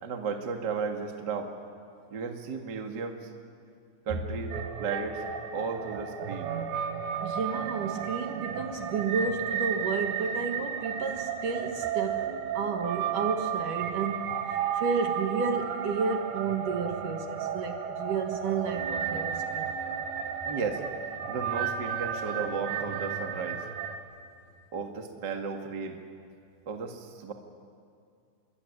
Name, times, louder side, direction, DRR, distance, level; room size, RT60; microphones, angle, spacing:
voice 1, 0.0-1.5 2.1-3.3 4.0-4.5 4.8-5.2 5.5-6.5 20.4-20.8 21.3-23.6 24.7-26.0 26.6-27.3, right 5 dB, 40° right, 3 dB, 1.7 m, -34 dB
sound 1, 4.5-24.0, right 7 dB, 85° right, 4.0 m, -33 dB
voice 2, 7.2-19.8, right 5 dB, 60° right, 4 dB, 2.6 m, -32 dB
26.0 x 23.0 x 9.9 m, 2.4 s
omnidirectional pair, 4.9 m